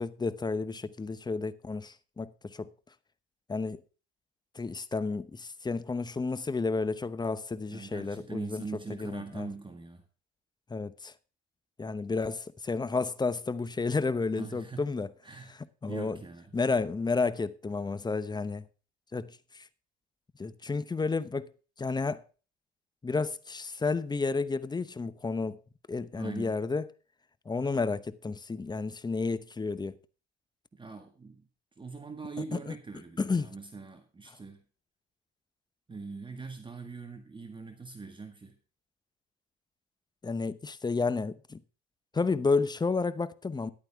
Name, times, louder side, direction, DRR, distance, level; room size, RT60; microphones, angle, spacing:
voice 1, 0.0-2.7 3.5-3.8 4.5-8.6 9.0-9.5 10.7-11.1 11.8-15.1 15.5-16.2 16.5-18.6 19.1-19.6 20.4-21.5 21.8-22.2 23.0-25.6 25.9-26.9 27.5-30.0 32.5-32.7 33.2-33.5 40.2-41.6 42.1-43.7, left 4 dB, 15° left, 0.8 m, -31 dB
voice 2, 7.7-10.0 14.3-14.9 15.2-16.5 26.1-26.6 30.7-31.5 31.8-34.6 35.9-38.6, right 4 dB, 15° right, 1.7 m, -42 dB
13.5 x 11.0 x 3.5 m
supercardioid pair, 100°, 33 cm